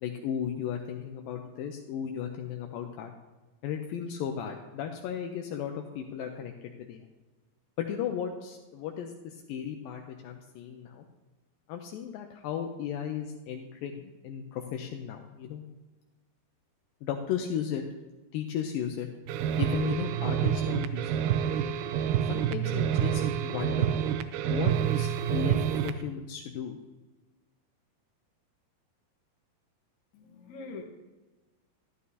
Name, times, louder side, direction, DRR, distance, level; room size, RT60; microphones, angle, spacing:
voice 1, 0.0-3.1 3.6-7.1 7.8-11.0 11.7-15.6 17.0-17.8 18.3-19.1 19.6-21.3 21.6-21.8 22.3-23.9 24.5-26.8, left 8 dB, 80° left, 3 dB, 2.2 m, -35 dB
sound 1, 19.3-26.0, right 9 dB, 85° right, 1.9 m, -28 dB
voice 2, 30.1-30.8, left 4 dB, 60° left, 0 dB, 2.3 m, -43 dB
12.5 x 11.5 x 2.8 m, 1.2 s
omnidirectional pair, 4.5 m